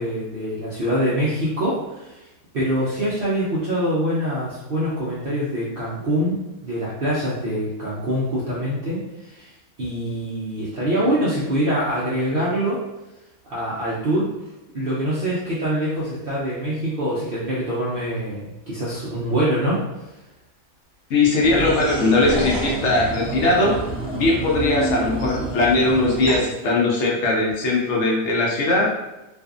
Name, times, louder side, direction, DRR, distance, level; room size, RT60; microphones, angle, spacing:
voice 1, 0.0-2.3 2.5-9.5 9.8-12.8 13.5-14.3 14.7-19.8, equal, 65° right, -8 dB, 0.5 m, -24 dB
voice 2, 21.1-23.7 24.1-28.9, left 2 dB, 65° left, -3 dB, 0.8 m, -20 dB
sound 1, 21.4-26.4, right 2 dB, 25° right, 0.8 m, -28 dB
2.5 x 2.4 x 2.4 m, 1.0 s
omnidirectional pair, 1.6 m